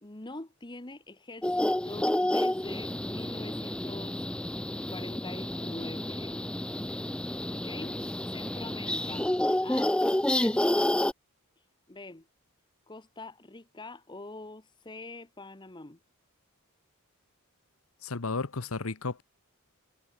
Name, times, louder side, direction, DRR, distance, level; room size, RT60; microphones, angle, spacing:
voice 1, 0.0-4.3 4.9-6.8 7.2-8.0 8.3-10.0 10.4-11.1 11.9-12.2 12.9-16.0, left 2 dB, 20° left, 1.2 m, -44 dB
sound 1, 1.4-11.1, left 1 dB, 5° left, 0.3 m, -29 dB
voice 2, 18.0-19.2, left 3 dB, 80° left, 1.1 m, -33 dB
head